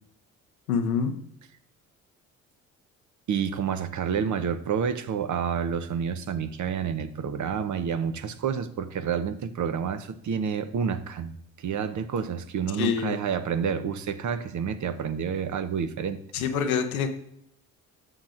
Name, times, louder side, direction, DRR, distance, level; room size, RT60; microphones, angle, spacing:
voice 1, 0.7-1.1 12.8-13.2 16.3-17.1, left 6 dB, 85° left, 6 dB, 0.8 m, -26 dB
voice 2, 3.3-16.2, right 7 dB, 45° right, 11 dB, 0.8 m, -29 dB
13.0 x 6.3 x 2.5 m, 0.73 s
hypercardioid pair, 50°, 41 cm